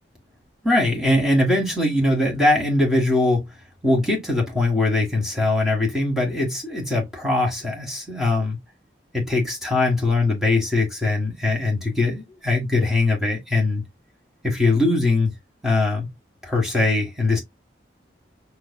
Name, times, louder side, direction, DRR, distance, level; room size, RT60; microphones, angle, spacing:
voice 1, 0.6-3.4 3.8-8.6 9.1-13.8 14.4-15.3 15.6-16.1 16.4-17.4, left 2 dB, ahead, 1.5 m, -21 dB
5.8 x 3.2 x 2.2 m
head